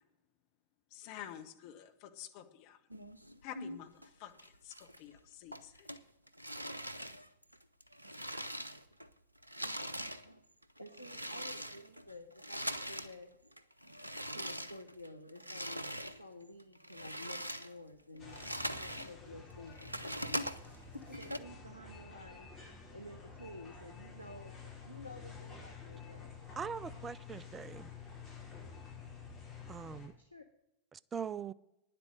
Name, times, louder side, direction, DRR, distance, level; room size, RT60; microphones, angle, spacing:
voice 1, 0.9-2.8 3.4-3.9 4.2-5.9, left 11 dB, 45° left, 1.1 m, -49 dB
sound 1, 2.9-4.1 4.4-5.2 5.5-9.1 9.4-13.2 13.5-16.2 16.6-19.1 19.5-21.4, equal, 85° right, 0.5 m, -42 dB
voice 2, 10.8-13.3 14.3-20.5 21.1-22.5 22.9-26.3 30.2-30.4, left 1 dB, 85° left, 0.8 m, -51 dB
sound 2, 18.2-30.1, left 5 dB, 15° left, 4.9 m, -50 dB
voice 3, 26.6-27.9 29.7-30.1 30.9-31.5, right 6 dB, 20° right, 0.4 m, -42 dB
9.9 x 7.8 x 7.6 m
figure-of-eight pair, 90°, 0 cm